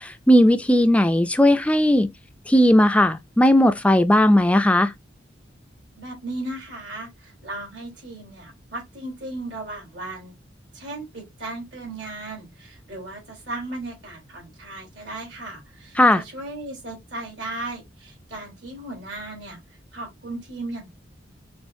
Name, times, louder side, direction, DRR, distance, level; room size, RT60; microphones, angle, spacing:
voice 1, 0.0-2.1 2.5-4.9 16.0-16.2, left 1 dB, 5° left, 0.3 m, -17 dB
voice 2, 6.0-10.4 10.7-19.6 19.9-20.9, right 2 dB, 75° right, 3.7 m, -36 dB
6.2 x 3.1 x 2.6 m
head